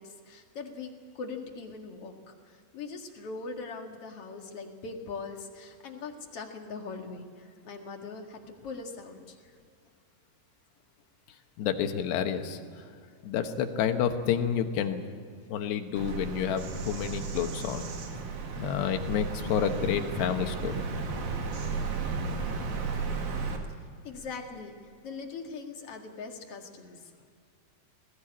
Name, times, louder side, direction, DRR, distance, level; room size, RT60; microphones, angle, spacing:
voice 1, 0.0-9.4 13.0-13.1 15.6-15.7 21.2-21.3 23.5-23.8 24.0-24.7 25.0-27.3, left 4 dB, 45° left, 2 dB, 2.1 m, -41 dB
voice 2, 11.6-12.8 13.2-15.0 15.5-17.8 18.6-20.8, left 8 dB, 75° left, 7 dB, 3.3 m, -29 dB
Bird vocalization bird call bird song, 16.0-23.6, right 4 dB, 55° right, 2.8 m, -34 dB
21.0 x 17.0 x 8.7 m, 2.2 s
omnidirectional pair, 5.0 m